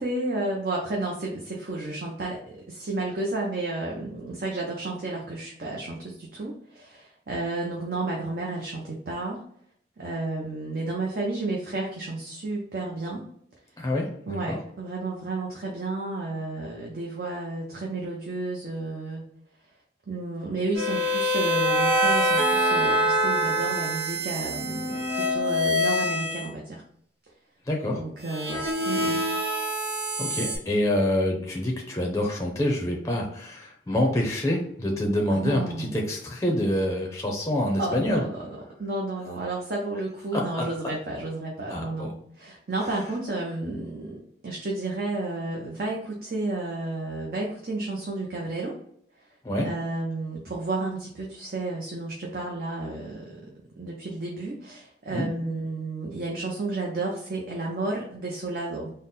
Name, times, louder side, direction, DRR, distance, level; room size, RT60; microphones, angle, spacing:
voice 1, 0.0-9.4 10.0-13.2 14.3-19.2 20.1-26.8 27.9-29.2 35.3-36.0 37.8-48.8 49.6-58.9, right 2 dB, 50° right, -2 dB, 0.6 m, -32 dB
voice 2, 13.8-14.6 27.7-28.0 30.2-38.2 40.3-40.6 41.7-42.1 49.4-49.7 55.1-55.3, left 1 dB, 15° left, -1 dB, 0.6 m, -26 dB
sound 1, 20.7-26.5 28.3-30.6, equal, 65° right, 1.2 m, -25 dB
3.8 x 2.1 x 3.9 m, 0.67 s
head